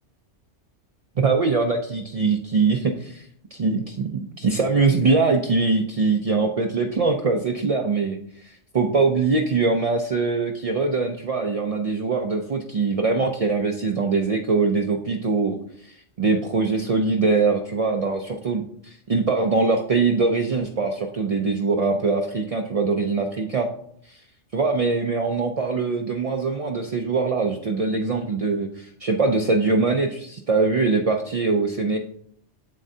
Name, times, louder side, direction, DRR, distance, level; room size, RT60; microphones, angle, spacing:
voice 1, 1.2-3.3 3.5-15.6 15.8-23.7 24.1-24.2 24.5-32.0, right 4 dB, 65° right, 3 dB, 0.3 m, -22 dB
7.5 x 7.4 x 2.7 m, 0.67 s
omnidirectional pair, 1.3 m